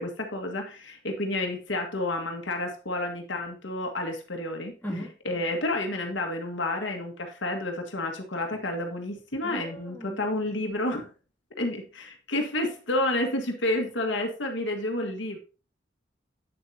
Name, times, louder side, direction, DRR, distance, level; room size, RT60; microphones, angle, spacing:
voice 1, 0.0-4.7 5.2-11.1 11.6-15.4, left 1 dB, 75° left, 1.7 m, -30 dB
voice 2, 9.4-10.2, equal, 10° left, 2.5 m, -37 dB
8.6 x 7.4 x 2.8 m
head